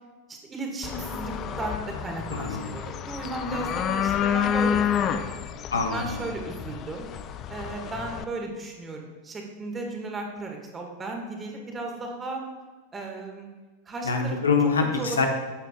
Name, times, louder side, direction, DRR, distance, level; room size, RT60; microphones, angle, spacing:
voice 1, 0.3-4.8 5.1-5.5 5.9-7.1 7.5-12.4 12.9-13.5 13.9-14.4 14.9-15.2, right 2 dB, 15° right, 1 dB, 1.9 m, -35 dB
sound 1, 0.8-8.2, left 8 dB, 30° left, 0.5 m, -29 dB
voice 2, 2.3-2.7 5.7-6.2 14.0-15.3, left 5 dB, 70° left, 3 dB, 1.2 m, -25 dB
13.0 x 9.0 x 2.4 m, 1.2 s
figure-of-eight pair, 90°, 0 cm